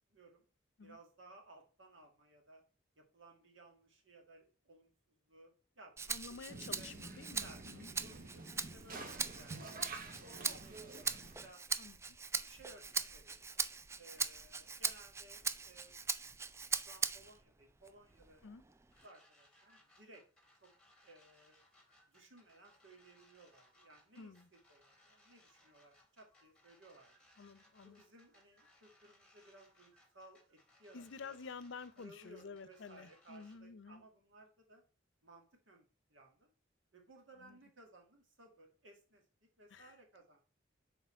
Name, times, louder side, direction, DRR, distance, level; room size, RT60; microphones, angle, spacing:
voice 1, 0.1-0.4 0.8-2.6 3.0-5.5 5.8-6.9 7.4-11.6 12.4-13.4 13.9-15.9 16.8-18.5 19.0-20.2 20.6-20.7 21.0-21.6 22.1-27.1 27.8-31.4 32.0-34.8 35.2-36.5 36.9-39.2 39.6-40.4, right 2 dB, 70° right, 2.1 m, -60 dB
Rattle (instrument), 6.0-17.4 17.9-19.1, right 5 dB, 15° right, 0.3 m, -41 dB
voice 2, 6.1-7.9 11.8-12.2 18.4-18.6 24.2-24.5 27.4-28.0 30.9-34.0 37.4-37.6 39.7-39.9, left 5 dB, 70° left, 0.6 m, -51 dB
sound 1, 6.5-11.5, right 3 dB, 50° right, 1.1 m, -49 dB
sound 2, 18.9-33.6, left 1 dB, 5° left, 1.7 m, -68 dB
6.7 x 4.3 x 4.4 m
head